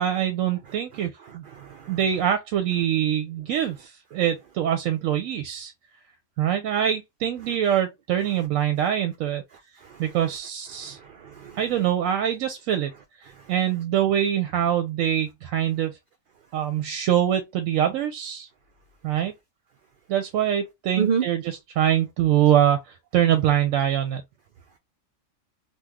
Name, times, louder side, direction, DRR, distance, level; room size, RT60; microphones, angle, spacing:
voice 1, 0.0-1.4 1.9-5.7 6.4-9.4 10.0-11.0 11.6-12.9 13.5-16.0 16.5-18.5 19.0-19.3 20.1-24.2, right 10 dB, 80° right, 1.0 m, -24 dB
voice 2, 0.9-2.0 9.8-10.0 10.8-11.6 13.3-13.4 21.0-21.3, right 6 dB, 55° right, 0.6 m, -30 dB
3.0 x 2.4 x 3.4 m
omnidirectional pair, 1.4 m